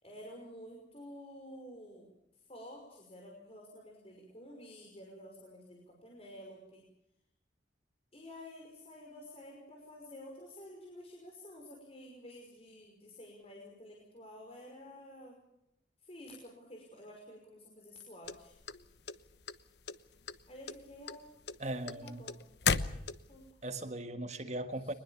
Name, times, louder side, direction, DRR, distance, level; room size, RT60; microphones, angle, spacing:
voice 1, 0.0-2.1 2.5-6.8 8.1-15.4 16.0-18.6 20.5-21.3 21.8-22.4 23.3-23.5 24.8-24.9, left 1 dB, 35° left, 5.6 m, -51 dB
sound 1, 18.2-19.5 19.9-20.4 20.7-23.5, left 5 dB, 65° left, 1.1 m, -34 dB
voice 2, 21.6-22.3 22.9-23.0 23.6-24.9, right 1 dB, 40° right, 1.7 m, -39 dB
23.5 x 21.0 x 7.2 m
head